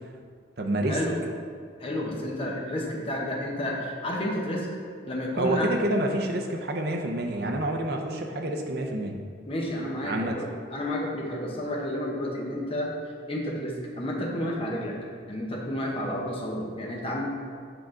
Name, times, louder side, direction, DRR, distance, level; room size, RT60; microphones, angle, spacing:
voice 1, 0.6-1.0 5.4-9.1 10.0-10.4, right 1 dB, 55° right, 2 dB, 0.6 m, -28 dB
voice 2, 1.8-4.7 5.1-5.7 9.5-12.9 13.3-15.0 15.3-17.2, left 1 dB, 30° left, -2 dB, 0.9 m, -31 dB
7.8 x 4.7 x 3.7 m, 2.1 s
head